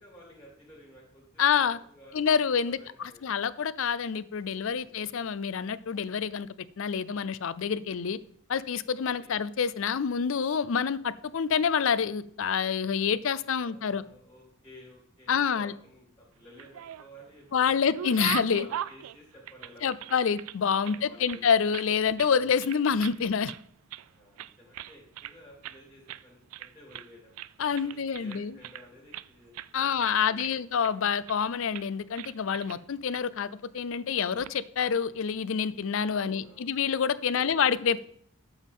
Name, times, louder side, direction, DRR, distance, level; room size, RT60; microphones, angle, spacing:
voice 1, 0.0-1.6 1.9-3.4 4.7-4.9 8.9-9.3 13.4-20.1 20.7-21.4 24.0-27.3 27.8-30.6 36.1-36.7 37.3-37.7, equal, 10° left, 3.1 m, -53 dB
voice 2, 1.4-1.8 2.1-2.8 3.2-6.5 6.8-8.2 8.5-14.0 15.3-15.7 17.5-18.7 19.8-23.5 27.6-28.6 29.7-38.0, left 6 dB, 65° left, 0.4 m, -27 dB
sound 1, 16.4-17.3 17.6-20.6 20.8-21.9 22.2-22.4 22.6-23.2 23.5-24.1 24.4-25.4 25.6-25.8 26.1-26.2 26.5-27.1 27.4-29.3 29.5-29.7 30.0-30.9 31.3-31.5 31.7-31.9 32.2-32.8 33.1-33.2 34.2-34.5, right 11 dB, 75° right, 0.3 m, -40 dB
12.0 x 7.1 x 3.6 m
head